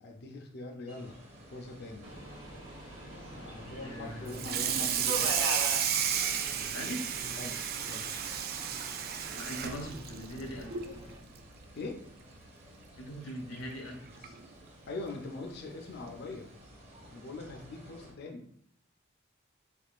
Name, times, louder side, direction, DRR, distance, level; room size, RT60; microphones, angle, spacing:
voice 1, 0.0-1.2 1.5-2.1 3.1-5.3 6.6-6.9 7.2-8.1 11.8-12.0 14.9-16.5 17.1-18.4, left 2 dB, 55° left, 2 dB, 0.5 m, -43 dB
sound 1, 0.9-18.1, right 1 dB, 30° right, 0.7 m, -54 dB
Subway metro underground, 2.0-11.2, right 1 dB, 75° right, 0.9 m, -43 dB
voice 2, 3.8-4.4 6.5-7.2 9.4-10.7 13.0-14.3, equal, 80° left, 1 dB, 0.9 m, -41 dB
Water tap faucet / Sink (filling or washing), 4.3-11.0 11.3-11.6 11.9-12.0 12.5-12.6 13.7-13.8 14.2-14.5, right 8 dB, 45° right, 0.3 m, -32 dB
3.6 x 3.5 x 2.4 m, 0.65 s
head